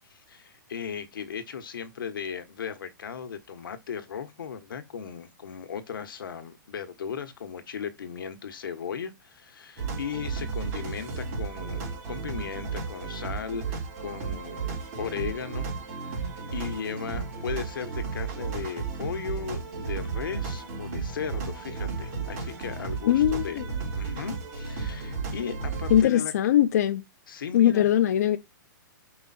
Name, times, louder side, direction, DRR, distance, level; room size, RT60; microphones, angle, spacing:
voice 1, 0.1-14.7 15.0-23.6 23.9-26.3 27.3-27.9, left 7 dB, 80° left, 1.5 m, -37 dB
sound 1, 9.8-26.0, right 5 dB, 30° right, 4.0 m, -34 dB
voice 2, 23.1-23.7 25.9-27.0 27.5-28.4, left 11 dB, 50° left, 0.7 m, -21 dB
6.5 x 5.5 x 4.3 m
hypercardioid pair, 170°, 11 cm